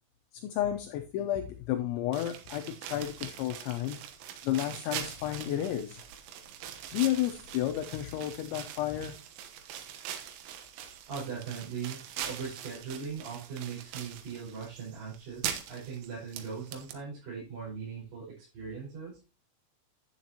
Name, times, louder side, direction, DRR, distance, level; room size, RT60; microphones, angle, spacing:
voice 1, 0.3-4.0 4.4-6.0 6.9-9.1, left 12 dB, 80° left, 7 dB, 2.9 m, -32 dB
sound 1, 2.1-16.9, right 10 dB, 80° right, 3.6 m, -42 dB
voice 2, 11.1-19.2, right 6 dB, 45° right, -8 dB, 6.5 m, -40 dB
11.0 x 9.1 x 2.9 m, 0.30 s
omnidirectional pair, 5.7 m